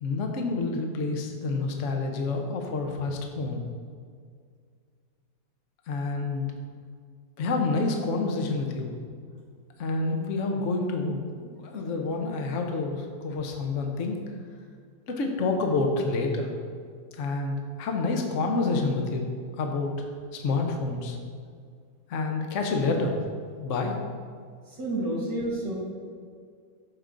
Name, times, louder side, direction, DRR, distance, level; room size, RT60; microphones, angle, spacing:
voice 1, 0.0-3.6 5.9-6.5 7.4-8.9 9.8-14.2 15.1-16.5 17.1-19.3 19.5-19.9 20.3-21.2 22.1-23.1 23.6-24.0, left 3 dB, 50° left, 2 dB, 1.1 m, -28 dB
voice 2, 24.8-25.8, right 1 dB, 75° right, -3 dB, 2.7 m, -29 dB
13.0 x 4.9 x 3.9 m, 2.1 s
omnidirectional pair, 2.0 m